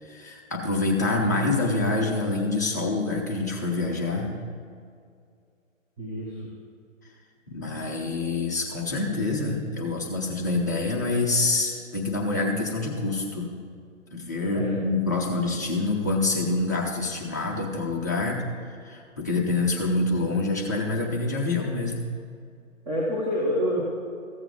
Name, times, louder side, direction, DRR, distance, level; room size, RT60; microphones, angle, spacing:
voice 1, 0.0-4.3 7.5-13.5 14.1-18.5 18.8-22.1, left 3 dB, 15° left, -2 dB, 0.5 m, -26 dB
voice 2, 6.0-6.5 14.5-14.8 22.9-23.8, equal, 15° right, -6 dB, 1.1 m, -27 dB
14.5 x 7.2 x 3.8 m, 2.3 s
figure-of-eight pair, 135°, 40 cm